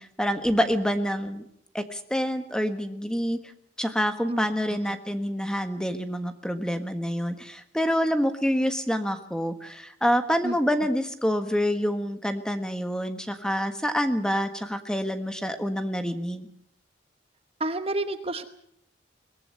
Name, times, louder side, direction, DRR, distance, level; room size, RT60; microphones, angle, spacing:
voice 1, 0.0-1.4 1.7-3.4 3.8-16.5, equal, 5° left, 8 dB, 1.4 m, -27 dB
voice 2, 17.6-18.4, right 2 dB, 30° right, 9 dB, 1.0 m, -29 dB
22.5 x 19.0 x 7.6 m, 0.72 s
head